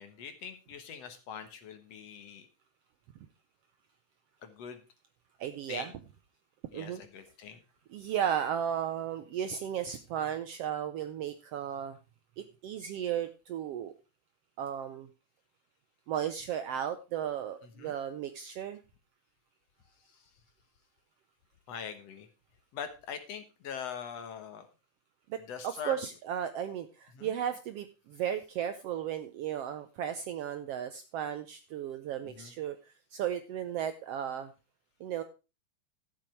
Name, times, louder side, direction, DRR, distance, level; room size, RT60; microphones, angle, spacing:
voice 1, 0.0-2.5 4.4-4.8 5.7-6.0 6.7-7.6 17.8-17.9 20.1-20.2 21.7-22.3 22.7-24.7 25.5-26.0 27.1-27.3 32.2-32.5, left 7 dB, 60° left, 8 dB, 2.3 m, -42 dB
voice 2, 5.4-5.9 6.7-7.0 7.9-12.0 12.4-13.9 14.6-15.1 16.1-18.8 25.3-34.5 35.0-35.2, right 9 dB, 75° right, 9 dB, 1.4 m, -35 dB
13.0 x 7.7 x 4.5 m, 0.30 s
omnidirectional pair, 3.4 m